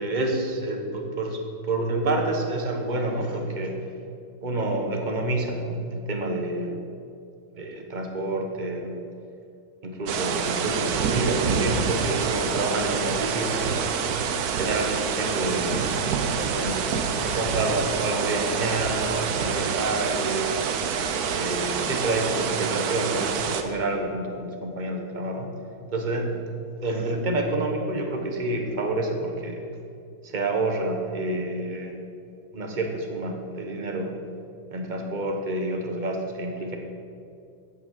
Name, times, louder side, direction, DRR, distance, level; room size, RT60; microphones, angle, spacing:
voice 1, 0.0-3.8 4.4-6.8 7.6-9.0 9.8-13.8 14.6-16.0 16.4-20.5 21.3-25.5 25.9-26.4 26.8-29.6 30.2-32.0 32.5-34.2 34.7-36.8, right 2 dB, 30° right, 3 dB, 1.0 m, -28 dB
sound 1, 10.1-23.6, right 6 dB, 60° right, 1.1 m, -27 dB
9.0 x 8.6 x 7.4 m, 2.5 s
omnidirectional pair, 2.2 m